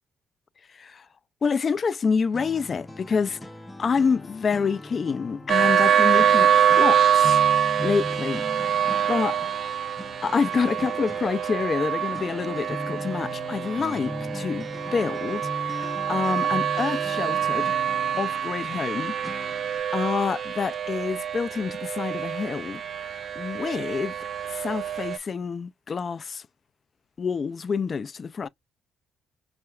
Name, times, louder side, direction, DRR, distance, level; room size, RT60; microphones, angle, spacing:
voice 1, 0.7-1.1 1.4-3.4 3.8-7.4 7.8-8.4 9.1-9.4 10.2-17.7 18.2-19.1 19.9-24.1 24.5-26.4 27.2-28.5, left 5 dB, 40° left, 0.3 m, -27 dB
sound 1, 2.3-19.8, left 2 dB, 10° left, 0.7 m, -39 dB
sound 2, 5.5-25.2, right 9 dB, 55° right, 0.3 m, -25 dB
5.6 x 2.1 x 2.3 m
cardioid pair, 90°, 0 cm